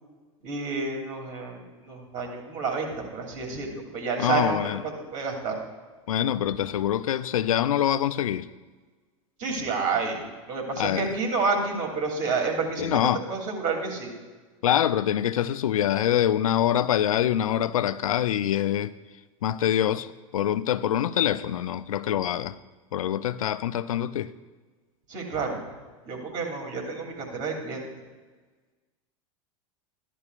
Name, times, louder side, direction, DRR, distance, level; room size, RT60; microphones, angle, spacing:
voice 1, 0.4-4.8 5.1-5.6 9.4-13.0 13.3-14.1 25.1-25.6 26.0-27.8, right 4 dB, 45° right, 1 dB, 2.8 m, -29 dB
voice 2, 4.2-4.8 6.1-8.5 10.8-11.1 12.8-13.2 14.6-18.9 19.4-22.6 22.9-24.3, left 11 dB, 80° left, 14 dB, 0.4 m, -25 dB
13.5 x 11.0 x 2.4 m, 1.3 s
hypercardioid pair, 90°, 18 cm